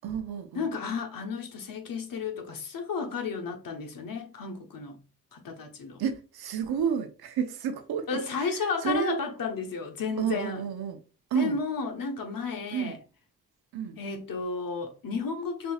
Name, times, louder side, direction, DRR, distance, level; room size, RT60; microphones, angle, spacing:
voice 1, 0.0-0.7 6.0-8.5 8.8-9.2 10.2-11.0 11.3-11.6 12.7-13.0 13.7-14.0, right 7 dB, 70° right, 0.8 m, -30 dB
voice 2, 0.5-5.0 5.3-6.0 8.1-10.6 11.3-13.0 14.0-15.7, left 5 dB, 60° left, 1.1 m, -33 dB
5.3 x 2.7 x 2.3 m
cardioid pair, 60°, 39 cm